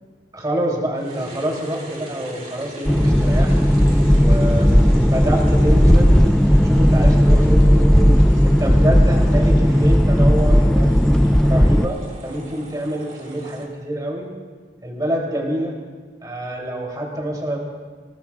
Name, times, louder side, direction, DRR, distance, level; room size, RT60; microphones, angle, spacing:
voice 1, 0.3-3.5 4.2-6.2 6.5-8.1 8.4-10.9 11.4-14.3 14.8-15.7 16.2-17.6, right 1 dB, 20° right, -1 dB, 3.1 m, -26 dB
sound 1, 0.9-13.6, right 1 dB, 40° right, 2.7 m, -40 dB
sound 2, 2.9-11.9, equal, 5° left, 0.3 m, -14 dB
27.5 x 19.0 x 2.4 m, 1.5 s
head